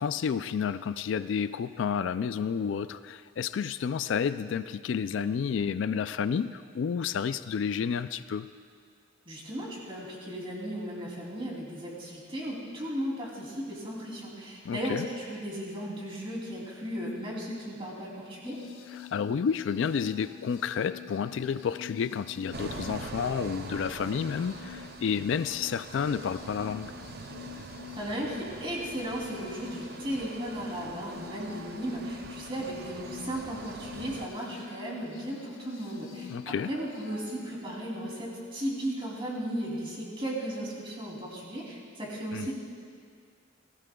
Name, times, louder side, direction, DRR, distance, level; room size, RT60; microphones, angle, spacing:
voice 1, 0.0-8.5 14.6-15.1 18.9-26.9 36.2-36.7 42.3-42.5, left 7 dB, 70° left, 13 dB, 0.3 m, -30 dB
voice 2, 9.3-18.6 28.0-42.5, equal, 25° right, -4 dB, 2.9 m, -36 dB
sound 1, 18.4-37.3, left 9 dB, 85° left, 0.9 m, -47 dB
sound 2, 22.5-34.3, right 3 dB, 50° right, 0.6 m, -44 dB
19.5 x 16.5 x 2.3 m, 2.1 s
head